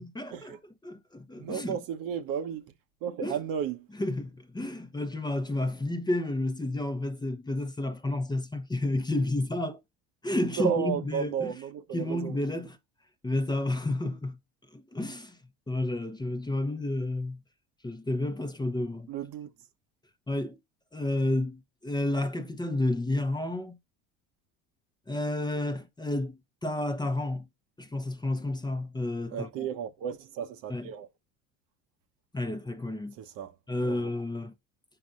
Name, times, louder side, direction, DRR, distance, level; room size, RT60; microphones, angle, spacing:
voice 1, 0.2-0.5 0.8-1.8 3.2-3.4 4.0-9.8 10.2-11.5 11.9-12.8 13.2-14.4 14.7-15.4 15.7-17.4 17.8-19.1 20.3-20.6 20.9-23.8 25.1-27.5 27.8-29.7 30.7-30.9 32.3-33.1 33.7-34.5, left 2 dB, 10° left, 0.8 m, -31 dB
voice 2, 1.4-2.7 3.0-3.9 10.6-12.4 19.1-19.5 29.3-31.1 33.2-33.5 33.8-34.1, right 8 dB, 60° right, 1.0 m, -33 dB
7.7 x 5.2 x 2.5 m
hypercardioid pair, 75°, 39 cm